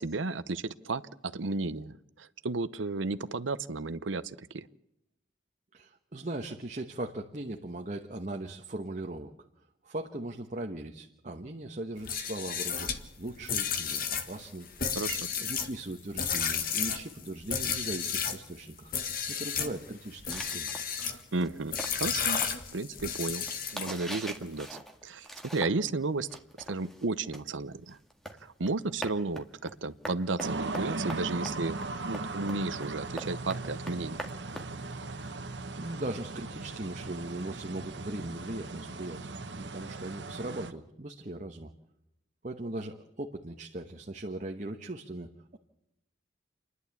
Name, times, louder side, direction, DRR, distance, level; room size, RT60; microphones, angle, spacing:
voice 1, 0.0-4.7 15.0-15.3 21.0-22.4 22.7-23.5 23.7-25.3 25.5-26.3 26.7-28.0 28.4-34.2, right 3 dB, 90° right, 15 dB, 0.8 m, -33 dB
voice 2, 5.7-9.3 9.8-12.9 13.2-14.7 15.4-18.9 19.3-20.7 35.4-41.7 42.4-45.6, right 1 dB, 40° right, 3 dB, 1.2 m, -39 dB
sound 1, 12.0-18.4 18.9-19.8 20.2-21.2 21.7-24.1, left 7 dB, 50° left, 1.7 m, -32 dB
sound 2, 20.3-25.9 26.2-35.3, right 1 dB, ahead, 1.8 m, -43 dB
sound 3, 30.4-40.7, right 3 dB, 70° right, 1.3 m, -38 dB
29.0 x 11.5 x 8.4 m, 0.86 s
head